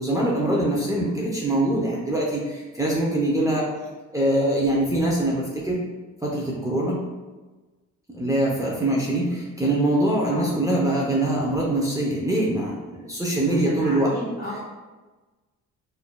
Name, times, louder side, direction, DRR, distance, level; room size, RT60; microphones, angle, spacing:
voice 1, 0.0-3.6 4.1-5.8 6.2-7.0 8.1-14.1, right 1 dB, 10° right, -4 dB, 0.7 m, -23 dB
voice 2, 13.5-14.6, left 1 dB, 30° left, -10 dB, 1.4 m, -33 dB
4.7 x 2.6 x 2.3 m, 1.2 s
cardioid pair, 90°, 30 cm